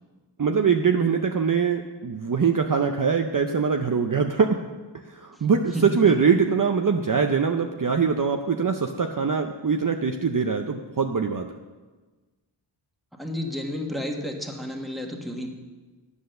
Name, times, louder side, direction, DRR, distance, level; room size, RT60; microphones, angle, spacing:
voice 1, 0.4-4.6 5.1-11.5, right 6 dB, 40° right, 5 dB, 0.6 m, -23 dB
voice 2, 13.2-15.5, left 1 dB, ahead, 2 dB, 1.5 m, -31 dB
9.9 x 8.0 x 6.6 m, 1.3 s
wide cardioid pair, 75°, 48 cm